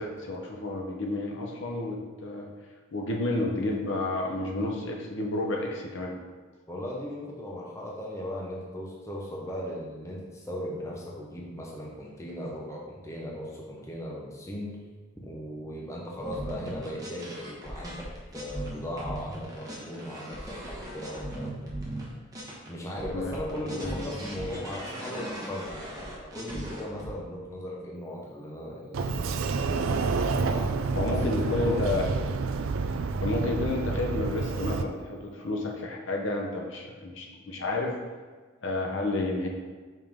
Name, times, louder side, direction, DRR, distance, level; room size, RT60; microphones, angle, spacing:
voice 1, 0.0-2.5 2.9-6.1 23.1-23.3 23.6-24.0 24.5-24.6 30.9-32.2 33.2-37.9 38.6-39.5, left 2 dB, 65° left, 0 dB, 0.8 m, -30 dB
voice 2, 6.7-14.8 15.2-18.1 18.3-21.6 22.7-29.6 30.3-32.3, equal, 15° left, -3 dB, 0.8 m, -38 dB
sound 1, 16.2-22.7 23.0-27.1, right 1 dB, 15° right, 1.1 m, -39 dB
Sliding door, 28.9-34.8, right 4 dB, 75° right, 0.4 m, -29 dB
5.5 x 5.3 x 3.6 m, 1.4 s
head